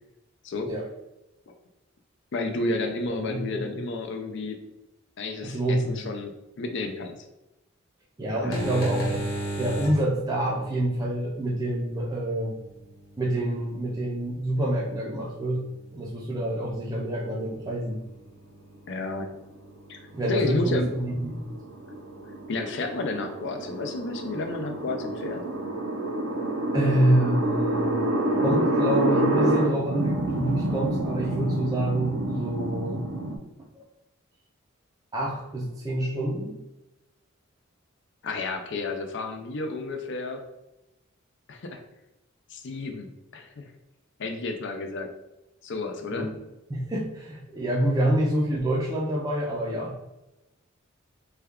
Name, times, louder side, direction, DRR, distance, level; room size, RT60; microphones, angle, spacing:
voice 1, 2.3-4.6 5.2-7.2 8.3-8.8 18.9-19.3 19.9-20.0 20.3-20.9 22.5-25.4 38.2-40.4 41.5-41.8 42.5-43.6 44.2-45.1 45.6-46.3, left 3 dB, 60° left, 5 dB, 0.5 m, -31 dB
voice 2, 3.1-3.8 5.4-6.1 8.2-9.2 9.6-12.6 13.2-15.6 15.9-18.0 20.1-21.6 26.7-28.0 28.4-33.0 33.7-33.8 35.1-36.6 46.1-46.4 46.7-49.9, right 1 dB, 20° right, -4 dB, 0.4 m, -27 dB
sound 1, 8.3-25.6, right 1 dB, 80° left, 0.9 m, -41 dB
sound 2, 20.8-33.4, right 1 dB, 90° right, 0.6 m, -28 dB
3.3 x 2.3 x 3.5 m, 0.96 s
head